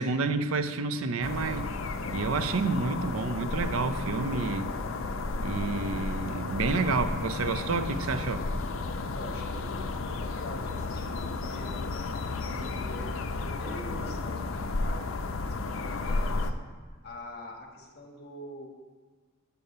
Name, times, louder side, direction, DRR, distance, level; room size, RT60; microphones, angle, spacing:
voice 1, 0.0-1.8 2.1-4.7 5.4-8.4, right 4 dB, 90° right, 11 dB, 0.5 m, -29 dB
sound 1, 1.2-16.5, left 3 dB, 70° left, 0.5 m, -33 dB
voice 2, 9.1-12.0 12.5-16.5 17.0-18.7, left 1 dB, 50° left, 2 dB, 1.3 m, -45 dB
6.9 x 6.6 x 5.5 m, 1.4 s
head